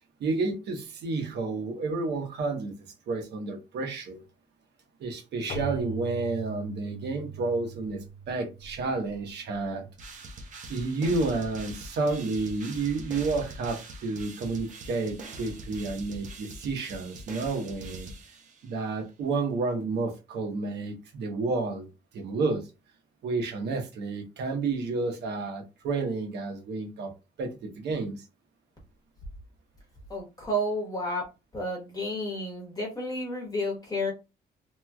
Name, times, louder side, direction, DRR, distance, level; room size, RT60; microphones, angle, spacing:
voice 1, 0.2-2.7 3.1-4.2 5.0-8.0 8.3-10.2 10.7-18.1 18.6-21.9 22.1-22.7 23.2-27.1 27.4-28.2, right 3 dB, 80° right, 1.0 m, -30 dB
Keyboard (musical), 5.5-10.0, right 4 dB, 60° left, 0.6 m, -41 dB
sound 1, 10.0-18.8, right 2 dB, 45° right, 0.6 m, -43 dB
voice 2, 30.1-31.2 31.5-34.1, equal, 20° left, 1.0 m, -31 dB
3.1 x 2.9 x 2.3 m
cardioid pair, 175°, 17 cm